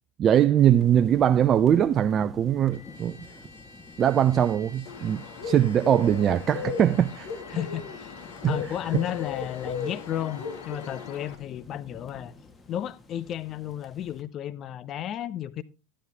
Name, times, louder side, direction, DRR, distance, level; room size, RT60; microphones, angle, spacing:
voice 1, 0.2-3.2 4.0-7.3 8.4-8.5, right 10 dB, 35° right, 0.5 m, -21 dB
sound 1, 0.6-14.2, left 3 dB, 20° left, 1.7 m, -49 dB
Trumpet, 2.7-11.2, left 2 dB, 80° left, 1.7 m, -51 dB
Bird, 4.9-11.4, left 6 dB, 60° left, 2.0 m, -37 dB
voice 2, 7.5-12.3 12.7-15.6, left 11 dB, 40° left, 0.7 m, -33 dB
12.5 x 10.0 x 3.5 m
hypercardioid pair, 85°, 0 cm